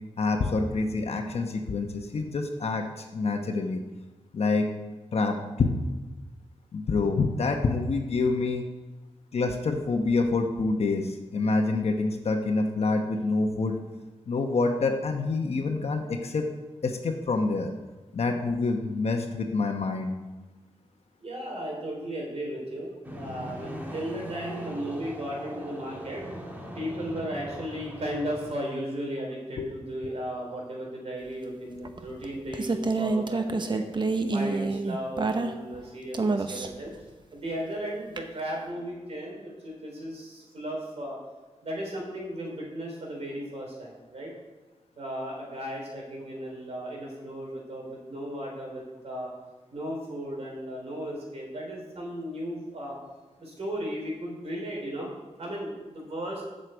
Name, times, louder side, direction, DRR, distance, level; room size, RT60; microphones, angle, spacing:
voice 1, 0.2-3.8 4.3-4.7 5.1-5.7 6.7-8.6 9.3-13.8 14.3-16.5 16.8-17.7 18.1-20.1 29.6-29.7, left 3 dB, 65° left, 4 dB, 1.0 m, -27 dB
voice 2, 21.2-26.3 26.7-33.8 34.3-41.2 41.6-44.3 45.0-49.3 49.7-53.0 53.4-55.1 55.4-56.4, equal, 70° right, -1 dB, 3.6 m, -35 dB
sound 1, 23.0-28.5, right 1 dB, 15° right, 1.8 m, -40 dB
sound 2, 31.8-35.8 36.1-36.9 38.2-38.3, right 3 dB, 45° right, 0.8 m, -27 dB
8.1 x 6.5 x 7.8 m, 1.2 s
wide cardioid pair, 105°, 11 cm